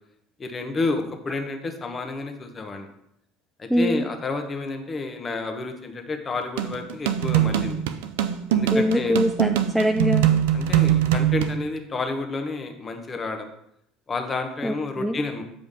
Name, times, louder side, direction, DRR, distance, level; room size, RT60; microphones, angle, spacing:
voice 1, 0.4-2.9 3.6-7.8 8.5-9.2 10.5-13.5 14.1-15.4, left 3 dB, 30° left, 6 dB, 1.1 m, -30 dB
voice 2, 3.7-4.1 8.7-10.3 14.6-15.2, equal, ahead, 4 dB, 0.5 m, -23 dB
sound 1, 6.6-11.6, right 11 dB, 70° right, 0.4 m, -22 dB
8.3 x 5.0 x 3.6 m, 0.75 s
figure-of-eight pair, 65°, 0 cm